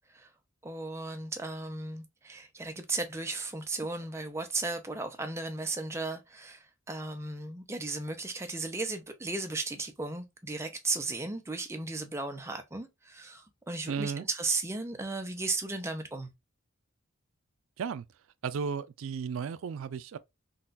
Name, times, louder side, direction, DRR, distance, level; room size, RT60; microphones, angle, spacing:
voice 1, 0.6-16.3, right 3 dB, 15° right, 0.4 m, -35 dB
voice 2, 13.9-14.2 17.8-18.0 18.4-20.2, right 6 dB, 75° right, 0.3 m, -34 dB
3.9 x 2.2 x 2.4 m
head